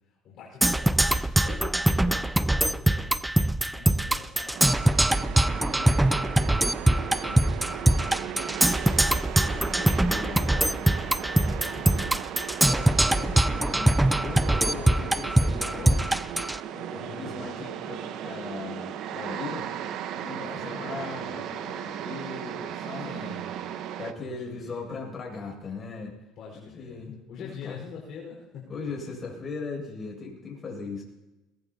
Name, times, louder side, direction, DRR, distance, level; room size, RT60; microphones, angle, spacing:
voice 1, 0.2-3.4 3.7-6.6 7.0-8.1 13.0-13.8 14.7-15.0 16.9-17.5 20.3-21.4 23.0-23.6 24.2-25.0 26.4-28.8, left 6 dB, 55° left, -2 dB, 4.9 m, -45 dB
Percussion, 0.6-16.6, right 1 dB, 5° right, 0.5 m, -23 dB
sound 1, 4.5-24.1, right 10 dB, 60° right, 1.1 m, -36 dB
voice 2, 9.5-12.1 12.6-16.1 16.7-19.7 20.2-23.4 24.0-26.2 26.5-27.8 28.7-31.0, left 4 dB, 30° left, 0 dB, 7.1 m, -39 dB
22.0 x 20.0 x 2.9 m, 1.0 s
supercardioid pair, 100°, 0 cm